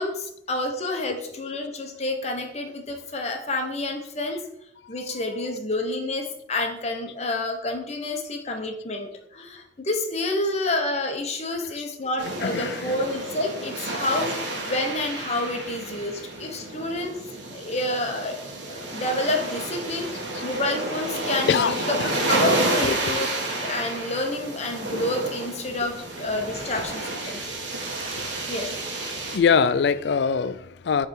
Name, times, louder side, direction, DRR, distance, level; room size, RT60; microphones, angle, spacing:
voice 1, 0.0-4.4 4.9-14.3 14.7-17.2 17.5-18.4 18.7-21.6 22.3-23.3 23.6-27.6 28.5-28.7, left 2 dB, 35° left, 4 dB, 1.0 m, -29 dB
sound 1, 12.2-29.4, right 2 dB, 85° right, 1.2 m, -30 dB
voice 2, 12.4-12.8 21.5-21.8 22.8-23.2 27.4-28.3 29.2-31.1, left 6 dB, 65° left, 15 dB, 0.3 m, -24 dB
7.9 x 3.4 x 4.5 m, 0.74 s
head